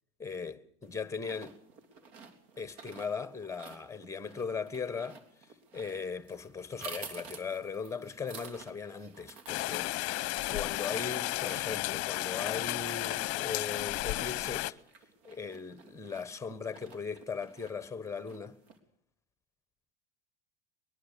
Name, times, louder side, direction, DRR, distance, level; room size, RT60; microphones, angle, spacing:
voice 1, 0.2-1.6 2.6-5.2 5.7-9.9 10.5-14.8 15.2-18.6, left 5 dB, 10° left, 1.3 m, -38 dB
sound 1, 0.8-18.8, right 5 dB, 60° right, 3.5 m, -52 dB
Rain, 9.5-14.7, left 19 dB, 45° left, 0.8 m, -33 dB
22.0 x 22.0 x 6.9 m
hypercardioid pair, 90°, 35 cm